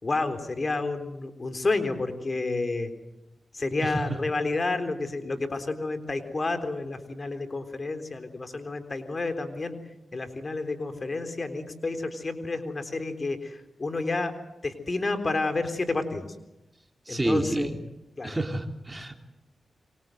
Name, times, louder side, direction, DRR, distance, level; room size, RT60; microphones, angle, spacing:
voice 1, 0.0-2.9 3.5-9.8 10.1-14.3 14.6-16.3 17.1-17.7 18.2-18.4, left 3 dB, 45° left, 8 dB, 3.8 m, -30 dB
voice 2, 3.8-4.2 17.1-17.8 18.2-19.2, right 1 dB, 25° right, 5 dB, 3.3 m, -29 dB
27.5 x 24.0 x 7.9 m, 0.94 s
cardioid pair, 45°, 0 cm